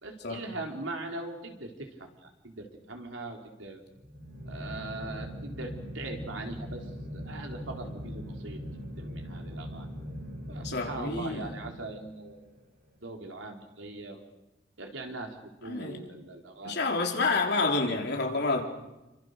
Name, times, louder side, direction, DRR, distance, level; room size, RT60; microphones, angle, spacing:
voice 1, 0.0-3.8 4.5-6.9 7.1-8.6 9.0-9.9 10.5-12.4 13.0-14.2 14.8-16.8 17.3-17.4, right 2 dB, 85° right, 3 dB, 4.1 m, -41 dB
sound 1, 3.9-12.3, equal, 45° right, 5.9 m, -40 dB
voice 2, 10.6-11.6 15.7-16.0 16.6-18.6, left 3 dB, 55° left, 1 dB, 4.1 m, -29 dB
28.5 x 25.0 x 6.7 m, 0.98 s
head